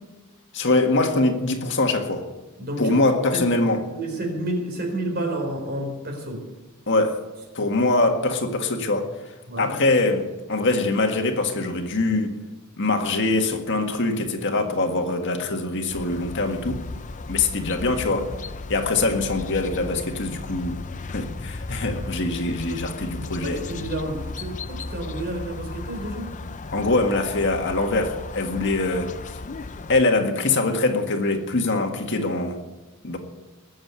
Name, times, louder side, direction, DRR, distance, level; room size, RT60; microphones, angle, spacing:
voice 1, 0.5-2.2 2.8-3.8 6.9-7.2 7.5-12.4 12.8-16.8 17.3-18.3 18.7-20.8 21.1-23.6 26.7-29.4 29.9-32.6 33.0-33.2, left 2 dB, 55° left, 1.8 m, -23 dB
voice 2, 2.6-3.0 3.3-3.4 3.9-6.4 9.5-9.7 23.4-26.3, right 1 dB, 45° right, 4.4 m, -30 dB
sound 1, 15.9-30.0, left 3 dB, 35° left, 0.5 m, -35 dB
21.0 x 7.8 x 8.3 m
head